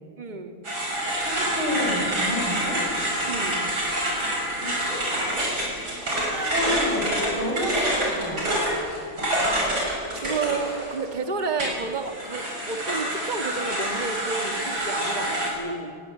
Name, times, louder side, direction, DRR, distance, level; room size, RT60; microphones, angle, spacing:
voice 1, 0.2-0.6 3.3-3.7 6.3-6.6 10.1-16.0, right 4 dB, 25° right, 6 dB, 1.5 m, -31 dB
sound 1, 0.6-11.1 11.6-15.5, right 1 dB, 50° right, 6.8 m, -27 dB
voice 2, 1.2-2.8 4.6-5.0 6.5-8.6, left 1 dB, 85° right, 1 dB, 5.9 m, -29 dB
21.5 x 20.5 x 9.0 m, 2.2 s
omnidirectional pair, 2.3 m